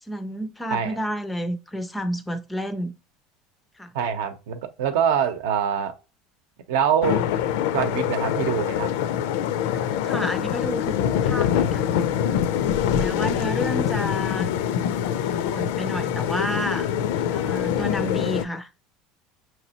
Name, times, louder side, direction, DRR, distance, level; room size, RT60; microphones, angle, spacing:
voice 1, 0.0-2.9 3.8-3.9 9.7-11.0 11.2-12.1 12.9-14.5 15.5-16.9 17.3-18.7, equal, 5° left, 0.3 m, -30 dB
voice 2, 3.9-5.9 6.7-7.2 7.7-8.9, right 8 dB, 85° right, 0.8 m, -24 dB
sound 1, 7.0-18.4, left 9 dB, 75° left, 0.4 m, -24 dB
5.8 x 3.0 x 2.9 m
cardioid pair, 170°, 0 cm